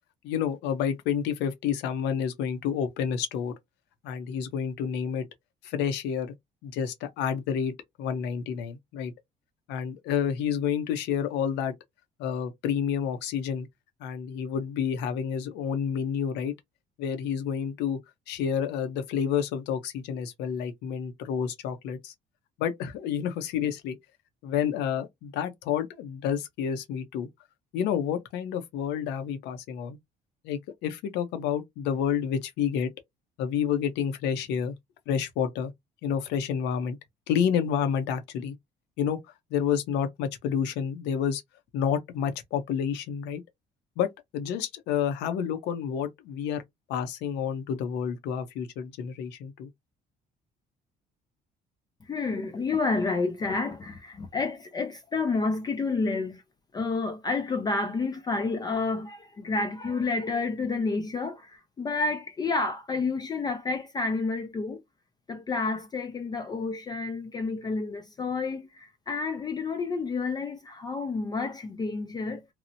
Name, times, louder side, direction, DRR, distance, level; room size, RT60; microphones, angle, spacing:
voice 1, 0.2-3.5 4.0-5.2 5.6-6.3 6.6-9.1 9.7-11.7 12.2-13.7 14.0-16.5 17.0-18.0 18.3-22.1 22.6-24.0 24.4-27.3 27.7-30.0 30.4-32.9 33.4-34.7 35.1-35.7 36.0-37.0 37.3-38.5 39.0-39.2 39.5-41.4 41.7-43.4 44.0-46.6 46.9-49.7, left 8 dB, 90° left, 0.7 m, -29 dB
voice 2, 52.0-56.4 56.7-64.8 65.3-72.5, left 3 dB, 25° left, 0.4 m, -30 dB
2.9 x 2.0 x 2.7 m
cardioid pair, 110°, 17 cm